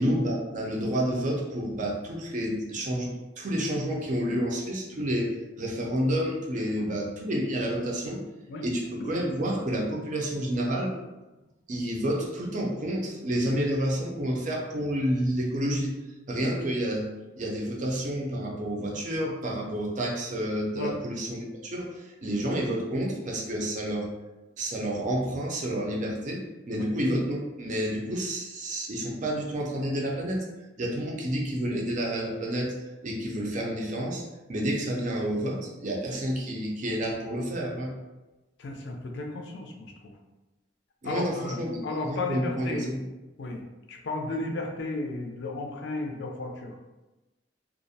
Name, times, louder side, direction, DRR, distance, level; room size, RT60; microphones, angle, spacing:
voice 1, 0.0-8.2 8.6-10.9 11.7-15.9 16.3-17.1 17.4-24.1 24.6-26.4 26.7-30.4 30.8-32.7 33.0-34.2 34.5-37.9 41.0-43.0, equal, 45° right, -2 dB, 0.5 m, -29 dB
voice 2, 38.6-39.9 41.0-42.9 43.4-43.6 43.9-46.7, left 2 dB, 65° left, 2 dB, 0.4 m, -33 dB
2.4 x 2.0 x 2.6 m, 1.1 s
head